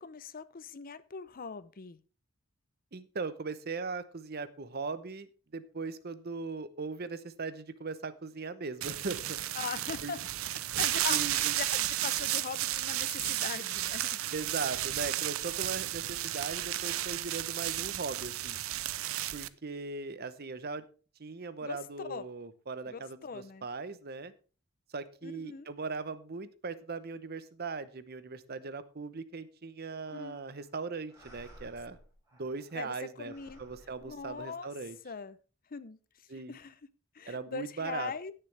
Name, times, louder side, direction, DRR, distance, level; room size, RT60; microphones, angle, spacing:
voice 1, 0.0-2.0 9.5-10.2 10.8-14.2 21.6-22.3 22.9-23.7 25.2-25.7 30.1-30.4 32.7-33.6 34.0-34.7 35.0-35.4 35.7-36.8 37.1-38.3, left 5 dB, 45° left, 15 dB, 0.6 m, -41 dB
voice 2, 2.9-9.4 10.0-10.1 11.1-11.5 14.3-18.6 19.3-20.8 21.2-24.3 24.9-32.0 32.4-33.3 33.6-35.0 36.3-36.5 37.3-38.1, right 4 dB, 50° right, 14 dB, 0.8 m, -39 dB
sound 1, 8.8-19.5, right 14 dB, 75° right, 0.5 m, -33 dB
sound 2, 30.1-30.7 31.1-32.9 33.3-34.8, equal, 15° right, 5.2 m, -57 dB
17.0 x 6.7 x 3.4 m, 0.36 s
head